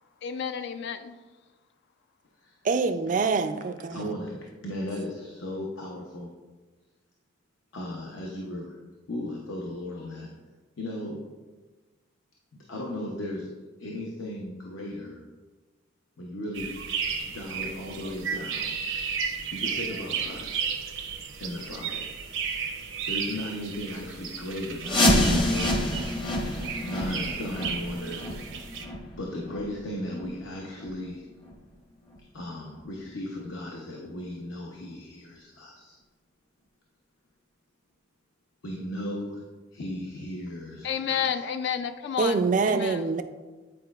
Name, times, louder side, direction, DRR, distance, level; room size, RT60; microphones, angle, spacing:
voice 1, 0.2-1.1 40.8-43.0, left 7 dB, 60° left, 0.3 m, -31 dB
voice 2, 2.6-4.1 42.2-43.2, right 4 dB, 40° right, 0.3 m, -25 dB
voice 3, 3.9-6.3 7.7-8.8 9.1-10.3 10.8-11.3 12.7-13.5 13.8-15.2 16.2-16.8 17.2-18.7 19.5-20.7 21.4-22.1 23.1-25.9 26.8-28.2 29.2-31.3 32.3-36.0 38.6-39.4 39.7-41.2, left 1 dB, 80° left, 0.7 m, -36 dB
sound 1, 16.5-28.9, right 6 dB, 85° right, 0.7 m, -34 dB
sound 2, 24.8-30.4 30.8-30.9 31.4-31.5 32.1-32.2 32.8-32.9, left 1 dB, 25° left, 0.7 m, -27 dB
8.5 x 4.8 x 2.3 m
head